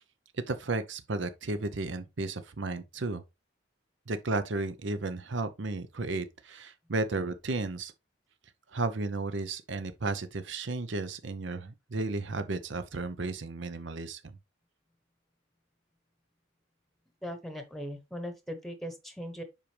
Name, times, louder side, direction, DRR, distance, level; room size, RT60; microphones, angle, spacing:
voice 1, 0.3-3.2 4.1-7.9 8.7-14.3, right 3 dB, 60° right, 0.7 m, -33 dB
voice 2, 17.2-19.4, equal, ahead, 1.0 m, -39 dB
7.4 x 5.1 x 3.3 m
head